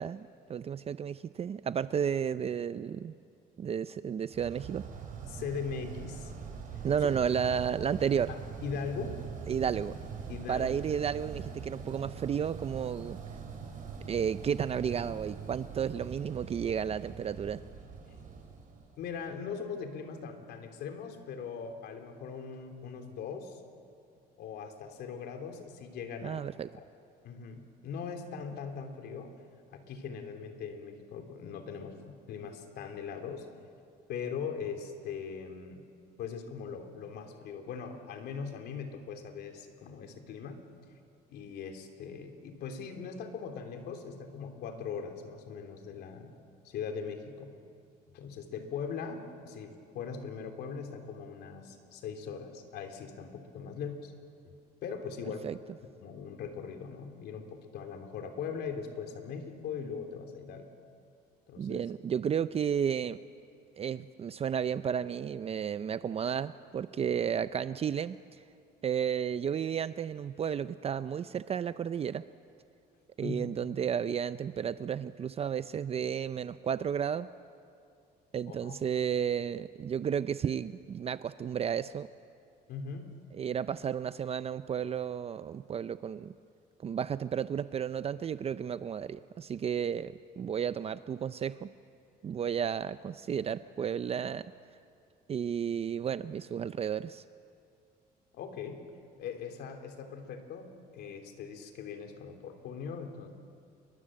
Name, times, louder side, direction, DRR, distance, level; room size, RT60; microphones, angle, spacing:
voice 1, 0.0-3.1 3.6-4.8 6.8-8.3 9.5-10.0 10.5-13.2 14.1-17.6 26.2-26.7 55.4-55.6 61.6-63.2 63.8-68.4 68.8-72.2 73.2-77.3 78.3-82.1 83.4-86.3 86.8-91.7 92.2-94.5 95.3-97.2, right 8 dB, 35° right, 13 dB, 0.5 m, -32 dB
sound 1, 4.3-19.3, right 6 dB, 55° right, 5.6 m, -43 dB
voice 2, 5.3-6.3 6.7-6.8 8.3-9.2 10.3-10.7 19.0-23.6 24.4-26.4 26.8-26.9 27.2-29.3 29.7-33.5 34.1-35.8 36.2-40.6 41.3-46.3 46.6-47.5 48.1-54.1 54.8-55.5 55.8-60.7 61.5-61.8 73.2-73.5 78.5-78.8 82.7-83.1 98.3-98.9 99.2-103.3, left 6 dB, 75° left, 5 dB, 3.2 m, -40 dB
29.0 x 23.5 x 7.7 m, 2.4 s
cardioid pair, 110°, 17 cm